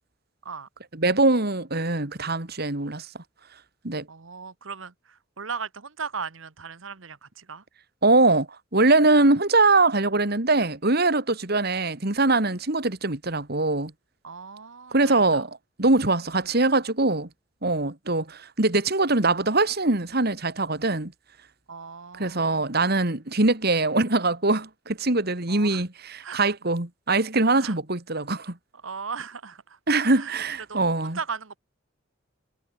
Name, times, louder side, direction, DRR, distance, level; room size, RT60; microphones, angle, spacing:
voice 1, 0.9-3.1 3.8-4.1 8.0-13.9 14.9-17.3 17.6-21.1 22.2-28.6 29.9-31.2, right 2 dB, 55° right, 2.5 m, -22 dB
voice 2, 4.1-7.6 14.2-15.4 21.7-22.7 25.5-25.8 26.2-26.4 27.6-27.8 28.8-29.8 30.1-30.4 30.7-30.8 31.1-31.6, right 5 dB, 90° right, 1.3 m, -37 dB
head